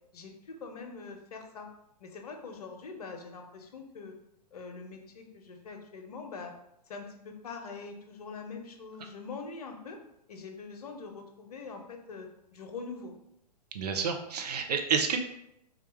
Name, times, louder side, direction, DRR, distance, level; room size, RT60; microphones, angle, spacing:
voice 1, 0.1-1.7 2.0-4.1 4.5-6.5 6.9-10.0 10.3-13.1, left 4 dB, 65° left, 4 dB, 0.7 m, -43 dB
voice 2, 13.7-15.2, right 6 dB, 70° right, 5 dB, 0.5 m, -29 dB
3.7 x 2.2 x 3.0 m, 0.80 s
figure-of-eight pair, 110°, 21 cm